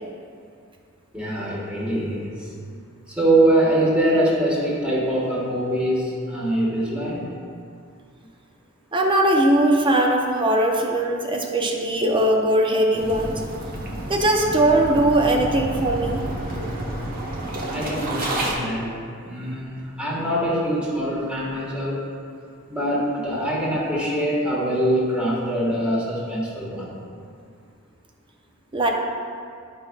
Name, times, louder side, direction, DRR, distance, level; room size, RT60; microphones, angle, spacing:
voice 1, 1.1-2.5 3.1-7.2 17.6-22.0 22.7-26.9, right 1 dB, 5° right, -6 dB, 1.6 m, -23 dB
voice 2, 8.9-13.4 14.1-16.2 28.7-28.9, right 1 dB, 25° right, 0 dB, 0.7 m, -20 dB
sound 1, 12.9-18.5, right 1 dB, 45° right, 1.0 m, -30 dB
11.0 x 5.3 x 2.4 m, 2.2 s
head